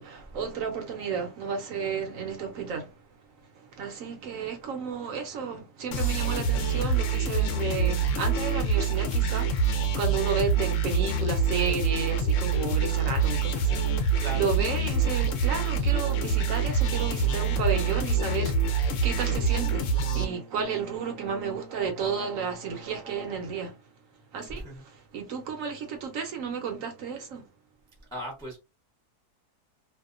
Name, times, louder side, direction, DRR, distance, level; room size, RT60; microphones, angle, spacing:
voice 1, 0.0-2.9 3.5-9.6 9.9-23.8 24.3-27.5, right 6 dB, 65° right, 0.9 m, -33 dB
sound 1, 5.9-20.2, right 4 dB, 65° left, 0.8 m, -25 dB
voice 2, 14.2-14.5 24.5-24.8 28.1-28.6, right 1 dB, 5° left, 0.5 m, -37 dB
2.7 x 2.1 x 2.4 m
omnidirectional pair, 1.7 m